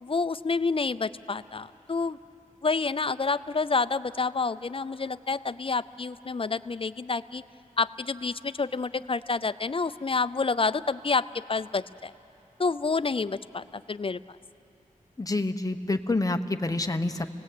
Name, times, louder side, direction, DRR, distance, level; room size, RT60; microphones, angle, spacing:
voice 1, 0.0-2.2 2.6-7.4 7.8-12.1 12.6-14.2, left 4 dB, 40° left, 15 dB, 0.5 m, -28 dB
voice 2, 15.2-17.3, left 2 dB, 25° left, 7 dB, 1.0 m, -27 dB
30.0 x 19.0 x 8.5 m, 2.9 s
wide cardioid pair, 95°, 14 cm